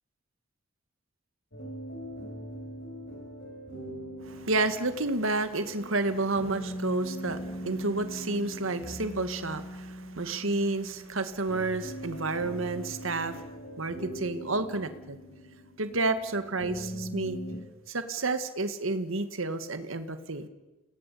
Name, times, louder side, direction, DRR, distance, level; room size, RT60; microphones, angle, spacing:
sound 1, 1.5-17.6, equal, 60° left, 6.3 m, -41 dB
voice 1, 4.2-13.4 13.8-15.2 15.8-17.4 17.9-20.5, right 2 dB, 75° right, 9 dB, 1.8 m, -30 dB
29.0 x 19.0 x 8.5 m, 1.1 s
head